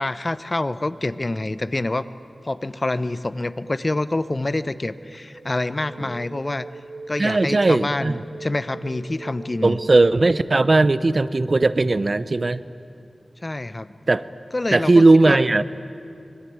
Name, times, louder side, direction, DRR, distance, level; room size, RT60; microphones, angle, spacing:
voice 1, 0.0-2.1 2.4-6.7 7.1-9.8 13.4-13.9 14.5-15.4, left 2 dB, 35° left, 13 dB, 0.9 m, -26 dB
sound 1, 1.9-11.2, right 3 dB, 75° right, 1.4 m, -42 dB
voice 2, 7.2-8.1 9.6-12.6 14.1-14.2 14.7-15.6, right 2 dB, 50° right, 14 dB, 0.8 m, -17 dB
25.5 x 21.0 x 9.5 m, 2.6 s
wide cardioid pair, 70°, 0 cm